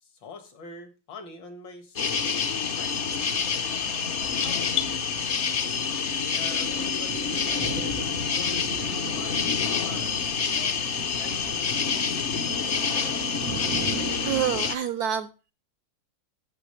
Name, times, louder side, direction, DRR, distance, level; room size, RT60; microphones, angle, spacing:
voice 1, 0.0-2.1 2.8-3.2 4.4-5.0 6.1-10.1 10.6-10.9 11.2-12.1, left 2 dB, 70° left, 2.4 m, -45 dB
sound 1, 2.0-14.8, left 6 dB, 50° left, 0.8 m, -27 dB
sound 2, 3.1-5.0, left 12 dB, 90° left, 1.4 m, -34 dB
Thunder, 7.1-14.3, right 11 dB, 85° right, 1.4 m, -42 dB
voice 2, 14.2-15.5, right 9 dB, 70° right, 0.9 m, -28 dB
13.5 x 6.1 x 3.1 m
omnidirectional pair, 2.1 m